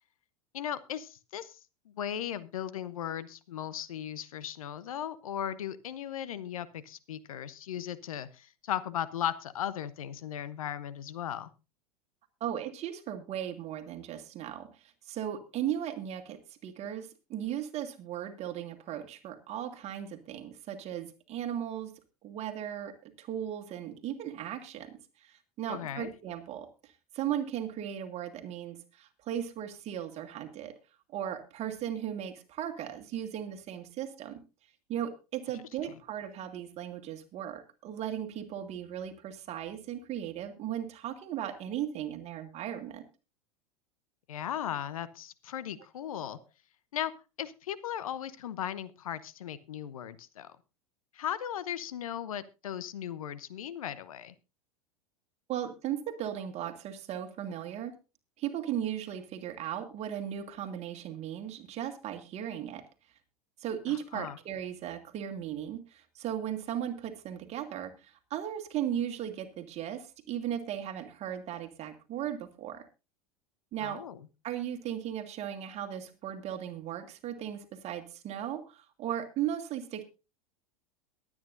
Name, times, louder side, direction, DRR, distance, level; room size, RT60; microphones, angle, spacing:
voice 1, 0.5-1.6 1.9-11.5 25.7-26.1 44.3-46.4 46.9-47.1 47.4-50.5 51.1-54.3 63.9-64.4 73.8-74.2, left 10 dB, 65° left, 16 dB, 0.9 m, -37 dB
voice 2, 12.4-21.9 22.2-30.7 31.1-34.4 34.9-43.0 46.2-46.4 55.5-57.9 58.4-62.8 63.6-72.9 73.7-74.0 74.4-80.0, right 10 dB, 35° right, 6 dB, 1.9 m, -37 dB
22.5 x 8.9 x 2.6 m, 0.29 s
figure-of-eight pair, 85°, 19 cm